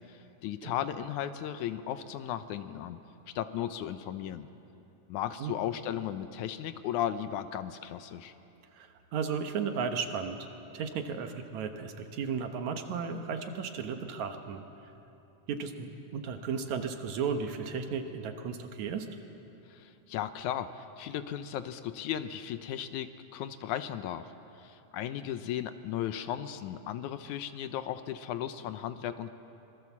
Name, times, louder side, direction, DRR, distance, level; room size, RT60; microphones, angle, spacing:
voice 1, 0.0-3.0 3.4-4.5 5.1-8.3 19.7-24.3 24.6-29.3, left 10 dB, 75° left, 11 dB, 2.0 m, -36 dB
voice 2, 8.7-10.5 10.7-14.6 15.5-19.1, right 6 dB, 65° right, 6 dB, 2.4 m, -34 dB
25.0 x 22.0 x 7.2 m, 2.8 s
omnidirectional pair, 3.7 m